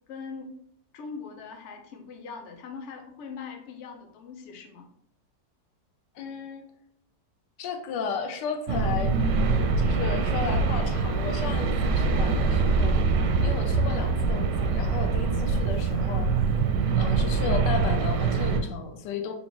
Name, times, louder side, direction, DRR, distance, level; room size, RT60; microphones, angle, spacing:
voice 1, 0.1-0.6 0.9-4.9, left 5 dB, 65° left, 3 dB, 0.7 m, -41 dB
voice 2, 6.1-6.6 7.6-9.1 9.8-13.0 13.4-16.3 16.9-19.3, left 5 dB, 90° left, 5 dB, 1.2 m, -34 dB
sound 1, 8.7-18.6, right 4 dB, 85° right, 1.2 m, -24 dB
3.5 x 2.4 x 3.7 m, 0.70 s
omnidirectional pair, 1.8 m